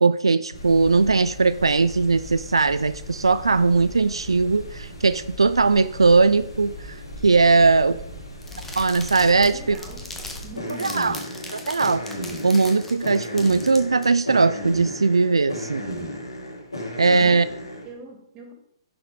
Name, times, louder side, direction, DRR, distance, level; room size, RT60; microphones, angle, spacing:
voice 1, 0.0-7.0 7.2-7.9 8.8-9.8 10.8-11.2 11.5-12.0 12.4-15.8 17.0-17.4, right 4 dB, 85° right, 13 dB, 0.4 m, -19 dB
sound 1, 0.5-17.9, equal, 90° left, 3.7 m, -36 dB
sound 2, 8.4-14.0, left 2 dB, 10° left, 1.7 m, -39 dB
voice 2, 9.4-10.1 10.4-11.0 17.0-18.5, right 2 dB, 30° right, 2 dB, 3.0 m, -42 dB
10.5 x 7.2 x 5.0 m, 0.72 s
figure-of-eight pair, 125°, 3 cm